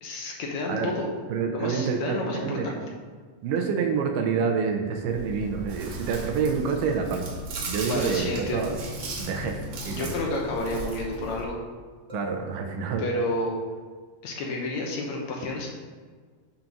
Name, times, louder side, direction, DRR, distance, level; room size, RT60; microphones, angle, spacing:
voice 1, 0.0-1.1 1.5-2.8 7.9-8.7 9.9-11.6 13.0-13.5 14.2-15.7, left 2 dB, 70° left, 0 dB, 1.9 m, -30 dB
voice 2, 1.3-2.7 3.4-7.3 7.7-8.8 9.2-10.1 12.1-13.1, right 6 dB, 90° right, 4 dB, 2.4 m, -28 dB
Chewing mastication, 5.1-11.4, right 1 dB, 65° right, 1.9 m, -36 dB
sound 1, 8.4-9.5 12.1-13.4, left 2 dB, 20° right, 1.2 m, -45 dB
7.3 x 3.9 x 5.9 m, 1.5 s
omnidirectional pair, 3.8 m